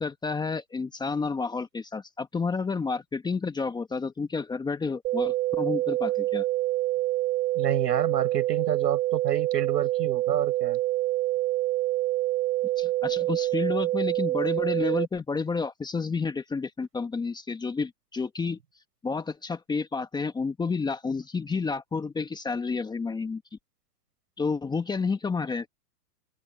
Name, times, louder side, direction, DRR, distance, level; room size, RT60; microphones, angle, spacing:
voice 1, 0.0-6.4 12.8-18.6 19.0-23.4 24.4-25.7, left 4 dB, 10° left, 1.3 m, -30 dB
sound 1, 5.0-15.1, right 16 dB, 20° right, 0.6 m, -26 dB
voice 2, 7.5-10.8, right 9 dB, 85° right, 7.6 m, -29 dB
open air
hypercardioid pair, 135°, 48 cm